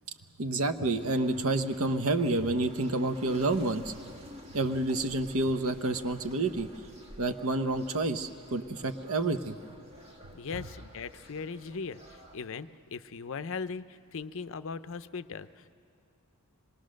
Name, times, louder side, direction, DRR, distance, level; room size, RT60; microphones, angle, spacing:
voice 1, 0.4-3.9 4.5-6.7 7.2-9.6, right 2 dB, 70° right, 9 dB, 1.0 m, -29 dB
sound 1, 1.0-12.4, equal, 30° right, 2.1 m, -51 dB
voice 2, 10.3-12.0 12.3-15.7, left 5 dB, 60° left, 13 dB, 0.6 m, -39 dB
26.0 x 21.5 x 6.5 m, 2.3 s
head